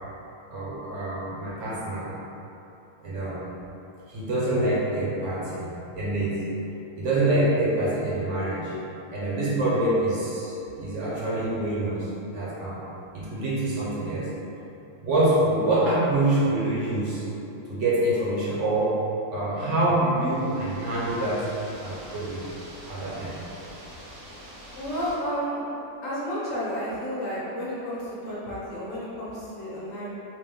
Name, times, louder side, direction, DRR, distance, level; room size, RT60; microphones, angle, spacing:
voice 1, 0.5-2.1 3.0-3.4 4.1-6.5 7.0-8.8 9.1-12.8 13.1-14.3 15.0-17.2 17.7-19.0 19.3-21.5 21.8-22.5 22.9-23.4, right 1 dB, 60° right, -8 dB, 1.1 m, -26 dB
sound 1, 20.2-25.2, equal, 85° right, 1.4 m, -45 dB
voice 2, 24.8-25.6 26.0-30.1, equal, 65° left, -8 dB, 1.3 m, -31 dB
3.6 x 2.5 x 3.5 m, 3.0 s
omnidirectional pair, 1.5 m